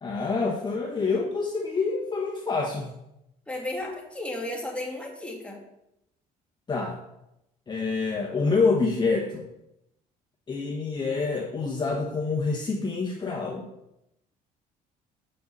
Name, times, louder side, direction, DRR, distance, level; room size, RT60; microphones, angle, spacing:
voice 1, 0.0-2.9 6.7-7.0 7.7-9.5 10.5-13.7, left 4 dB, 25° left, -1 dB, 1.2 m, -27 dB
voice 2, 3.5-5.6, left 1 dB, 5° left, -1 dB, 2.0 m, -34 dB
7.7 x 5.5 x 5.6 m, 0.86 s
cardioid pair, 110°, 17 cm